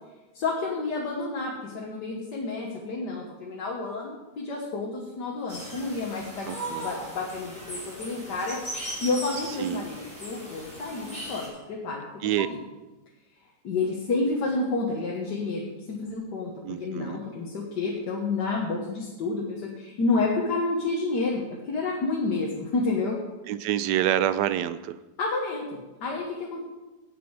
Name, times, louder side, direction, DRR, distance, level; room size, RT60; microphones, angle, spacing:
voice 1, 0.3-12.6 13.6-23.2 25.2-26.6, left 3 dB, 85° left, -2 dB, 1.9 m, -30 dB
sound 1, 5.5-11.5, right 1 dB, 5° left, 4.1 m, -38 dB
voice 2, 6.5-6.9 9.6-9.9 12.2-12.5 16.6-17.2 23.5-25.0, right 11 dB, 85° right, 14 dB, 1.2 m, -27 dB
16.5 x 6.1 x 4.7 m, 1.1 s
omnidirectional pair, 1.8 m